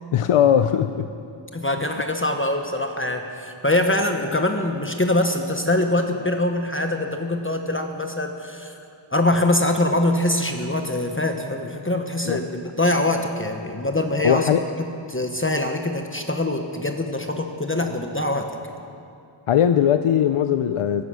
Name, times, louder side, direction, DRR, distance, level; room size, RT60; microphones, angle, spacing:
voice 1, 0.1-1.1 12.3-12.4 14.2-14.6 19.5-21.0, left 9 dB, 90° left, 10 dB, 0.6 m, -19 dB
voice 2, 1.5-8.8 9.1-14.5 14.8-18.6, left 1 dB, 25° left, 4 dB, 1.1 m, -23 dB
15.5 x 14.5 x 6.2 m, 2.5 s
wide cardioid pair, 70°, 50 cm